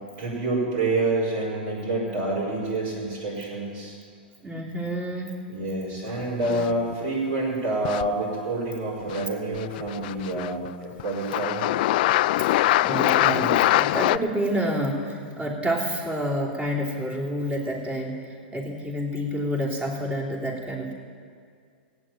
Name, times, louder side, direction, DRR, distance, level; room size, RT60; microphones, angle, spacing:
voice 1, 0.2-4.0 5.5-11.6 12.8-13.7, right 2 dB, 60° right, -8 dB, 5.0 m, -28 dB
voice 2, 4.4-5.3 6.5-6.6 12.8-20.9, equal, 20° right, -1 dB, 3.2 m, -28 dB
sound 1, 6.4-6.9 7.8-8.1 9.1-9.3 9.5-10.7 11.0-14.2, left 16 dB, 55° left, 0.4 m, -23 dB
15.5 x 9.2 x 9.0 m, 2.2 s
hypercardioid pair, 115°, 6 cm